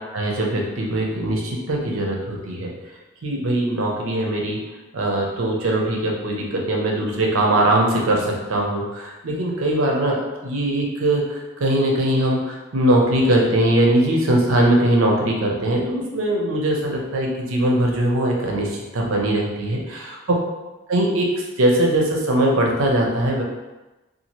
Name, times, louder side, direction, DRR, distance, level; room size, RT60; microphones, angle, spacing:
voice 1, 0.1-2.7 3.2-4.6 4.9-20.1 20.9-21.3 21.6-23.4, right 1 dB, 80° right, -1 dB, 0.6 m, -21 dB
2.8 x 2.4 x 2.9 m, 1.1 s
head